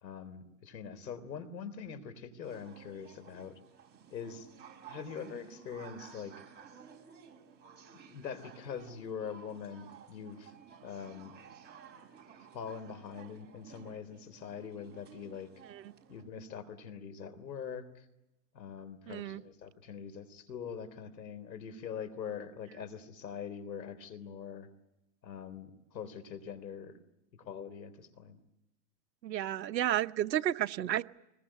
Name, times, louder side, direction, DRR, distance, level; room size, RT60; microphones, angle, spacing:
voice 1, 0.0-3.6 4.1-4.5 4.9-6.3 7.9-10.5 10.8-11.3 12.5-15.5 16.1-18.1 18.5-24.7 25.2-26.9 27.4-28.4, left 7 dB, 85° left, 11 dB, 3.7 m, -43 dB
sound 1, 2.4-16.2, right 7 dB, 20° right, 5.8 m, -55 dB
voice 2, 19.1-19.4 29.2-31.0, right 11 dB, 85° right, 13 dB, 1.0 m, -32 dB
24.5 x 21.5 x 8.8 m, 0.92 s
hypercardioid pair, 120°, 50 cm